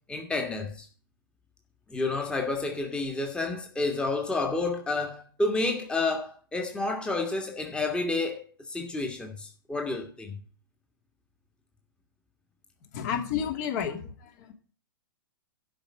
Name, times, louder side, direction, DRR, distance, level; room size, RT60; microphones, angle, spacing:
voice 1, 0.1-0.9 1.9-10.4, left 3 dB, 10° left, 1.6 m, -30 dB
voice 2, 12.9-14.5, left 8 dB, 45° left, 2.6 m, -31 dB
12.0 x 5.2 x 7.5 m
figure-of-eight pair, 110°, 12 cm